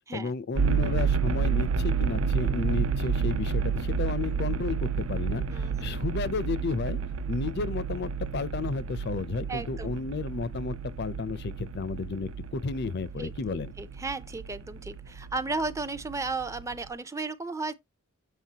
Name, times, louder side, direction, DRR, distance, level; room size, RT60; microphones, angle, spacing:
voice 1, 0.1-7.0 7.3-13.7, left 4 dB, 50° left, 0.5 m, -32 dB
sound 1, 0.6-16.9, right 5 dB, 70° right, 0.5 m, -30 dB
voice 2, 5.5-6.0 9.5-9.9 13.2-17.7, right 3 dB, 15° right, 0.4 m, -34 dB
7.4 x 6.0 x 2.8 m
head